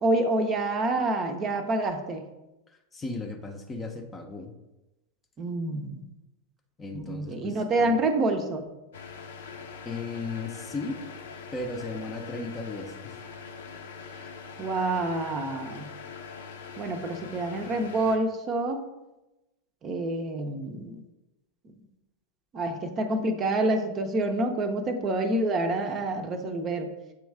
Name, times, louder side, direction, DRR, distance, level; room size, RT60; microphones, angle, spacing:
voice 1, 0.0-2.3 5.4-6.0 6.9-8.7 14.6-15.9 16.8-18.9 19.8-21.0 22.5-26.9, right 2 dB, 30° right, 6 dB, 0.7 m, -27 dB
voice 2, 2.9-4.5 6.8-8.0 9.8-11.1 11.5-13.2, left 3 dB, 20° left, 4 dB, 0.7 m, -36 dB
sound 1, 8.9-18.2, left 5 dB, 60° left, 0.7 m, -43 dB
7.8 x 3.1 x 4.8 m, 1.0 s
figure-of-eight pair, 90°, 0 cm